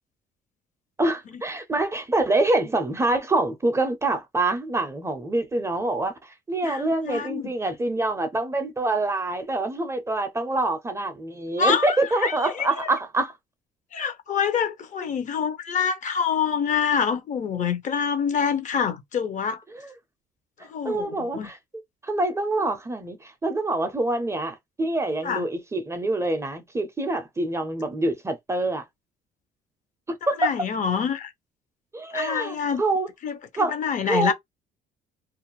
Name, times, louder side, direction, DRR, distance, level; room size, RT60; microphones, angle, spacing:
voice 1, 1.0-13.3 19.7-19.8 20.8-21.6 22.0-28.8 30.1-30.5 31.9-33.1 33.6-33.7 34.0-34.3, right 2 dB, 15° right, 0.5 m, -26 dB
voice 2, 6.6-7.5 11.6-12.9 13.9-19.6 20.6-21.5 25.2-25.5 30.2-31.3 32.1-32.8 33.2-34.3, left 7 dB, 50° left, 0.6 m, -26 dB
2.4 x 2.0 x 2.9 m
cardioid pair, 110°, 17 cm